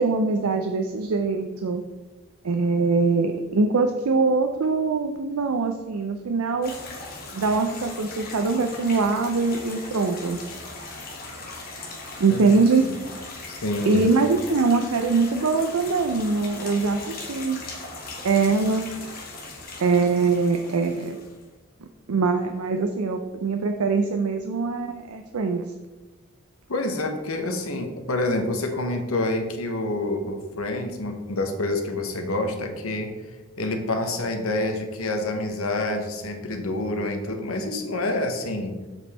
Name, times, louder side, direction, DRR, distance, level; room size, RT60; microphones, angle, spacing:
voice 1, 0.0-1.8 2.4-6.7 7.3-10.4 12.2-12.8 13.8-17.6 18.2-18.9 19.8-21.2 22.1-25.6, right 4 dB, 90° right, 5 dB, 0.5 m, -23 dB
sound 1, 6.6-21.4, left 3 dB, 45° left, 1.5 m, -39 dB
voice 2, 13.5-14.0 26.7-33.1 33.6-38.8, left 2 dB, 80° left, 5 dB, 1.1 m, -27 dB
7.1 x 5.3 x 4.2 m, 1.1 s
head